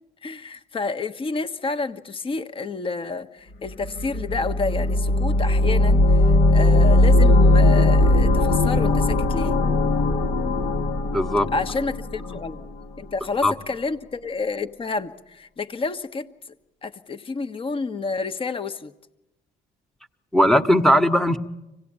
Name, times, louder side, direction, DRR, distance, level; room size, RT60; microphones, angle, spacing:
voice 1, 0.2-9.6 11.5-12.6 13.0-16.3 16.8-18.9, left 4 dB, 30° left, 9 dB, 1.3 m, -29 dB
sound 1, 3.8-12.7, left 2 dB, 65° left, 1.7 m, -19 dB
voice 2, 11.1-11.5 12.3-12.4 13.4-13.5 20.3-21.4, equal, ahead, 8 dB, 1.3 m, -18 dB
25.5 x 18.0 x 8.8 m, 0.94 s
cardioid pair, 110°, 17 cm